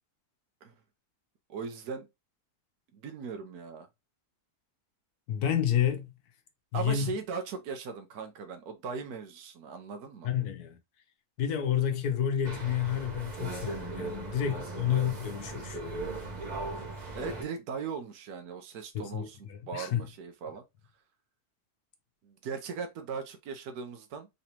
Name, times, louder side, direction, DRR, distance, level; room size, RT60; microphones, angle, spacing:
voice 1, 1.5-2.1 2.9-3.9 6.7-10.3 17.1-20.6 22.2-24.3, right 5 dB, 75° right, 1.3 m, -38 dB
voice 2, 5.3-6.1 6.7-7.1 10.2-10.8 11.4-15.8 18.9-20.1, left 9 dB, 80° left, 1.4 m, -30 dB
sound 1, 12.4-17.4, right 2 dB, 30° right, 1.3 m, -38 dB
3.9 x 3.3 x 2.8 m
omnidirectional pair, 1.6 m